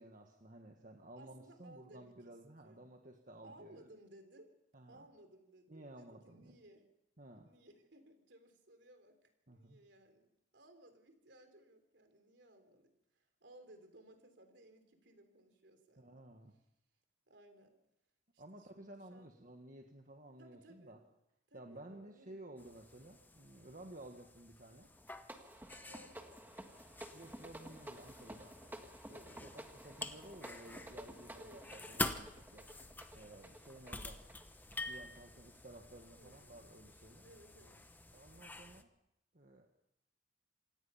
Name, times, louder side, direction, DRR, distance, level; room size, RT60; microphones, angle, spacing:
voice 1, 0.0-3.8 4.7-5.1 5.7-6.6 7.2-7.5 9.5-9.8 16.0-16.6 18.4-21.0 21.5-24.9 27.1-28.6 29.1-32.7 33.1-34.2 34.5-37.2 38.1-38.9 39.3-39.7, right 1 dB, 45° right, 2 dB, 1.6 m, -54 dB
voice 2, 1.2-2.3 2.6-2.9 3.4-4.5 4.9-6.9 7.4-16.2 17.3-17.8 18.3-18.7 19.1-19.4 20.4-21.0 21.5-22.4 25.8-26.7 28.6-28.8 29.2-29.5 31.4-31.9 36.2-36.6 37.2-37.9, right 1 dB, 65° right, 7 dB, 3.6 m, -61 dB
sound 1, 22.6-38.8, left 2 dB, 10° left, 0.9 m, -48 dB
sound 2, 25.0-35.3, right 1 dB, 10° right, 1.5 m, -53 dB
27.0 x 17.5 x 5.7 m, 0.84 s
head